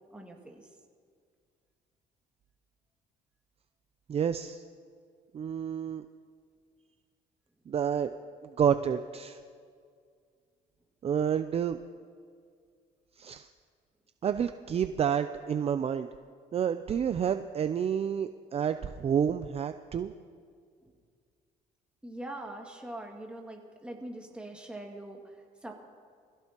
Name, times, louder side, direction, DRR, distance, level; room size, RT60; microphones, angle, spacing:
voice 1, 0.1-0.7 20.8-20.9 22.0-25.4 25.6-25.7, right 1 dB, 5° right, 0 dB, 2.3 m, -43 dB
voice 2, 4.1-4.6 5.3-6.0 7.7-8.1 8.4-9.4 11.0-11.8 13.2-13.5 14.2-16.1 16.5-20.1, right 8 dB, 35° right, 10 dB, 0.5 m, -29 dB
24.5 x 16.0 x 3.0 m, 2.1 s
cardioid pair, 110°, 17 cm